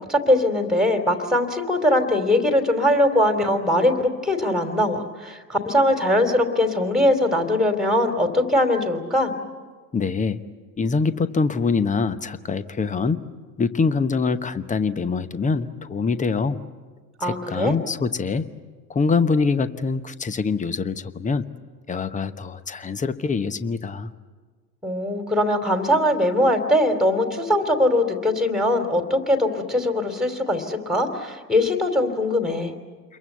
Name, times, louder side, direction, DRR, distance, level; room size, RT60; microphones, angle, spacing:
voice 1, 0.1-9.3 17.2-17.7 24.8-32.7, left 1 dB, ahead, 5 dB, 3.2 m, -21 dB
voice 2, 9.9-10.4 10.8-13.2 13.6-16.6 17.2-18.4 18.9-21.5 21.9-24.1, left 4 dB, 15° left, 13 dB, 1.0 m, -24 dB
29.0 x 23.0 x 8.1 m, 1.5 s
figure-of-eight pair, 80°, 49 cm